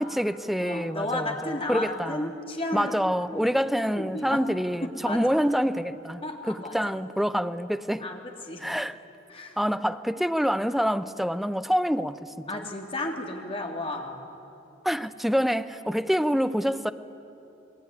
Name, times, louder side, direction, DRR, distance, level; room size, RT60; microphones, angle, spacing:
voice 1, 0.0-2.3 2.7-8.1 8.6-9.0 9.6-12.6 14.8-16.9, equal, ahead, 0.7 m, -26 dB
voice 2, 0.6-3.0 3.3-3.5 3.9-4.4 5.0-5.2 6.2-6.8 8.0-8.6 9.3-9.6 12.5-14.2, left 2 dB, 30° left, 3.1 m, -33 dB
28.5 x 21.0 x 9.8 m
head